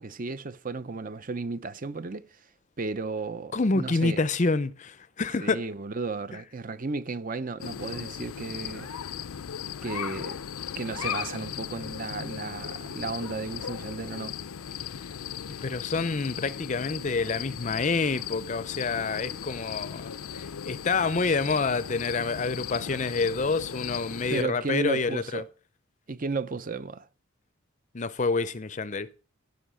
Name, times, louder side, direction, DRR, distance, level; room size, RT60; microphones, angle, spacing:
voice 1, 0.0-2.5 2.8-4.2 5.4-8.9 9.8-10.4 10.7-14.4 24.3-25.5 26.1-27.1, right 3 dB, 40° right, 0.6 m, -34 dB
voice 2, 3.5-5.6 15.5-25.4 27.9-29.1, left 4 dB, 35° left, 0.5 m, -28 dB
sound 1, 7.6-24.4, left 8 dB, 80° left, 0.5 m, -37 dB
15.5 x 5.5 x 6.3 m
head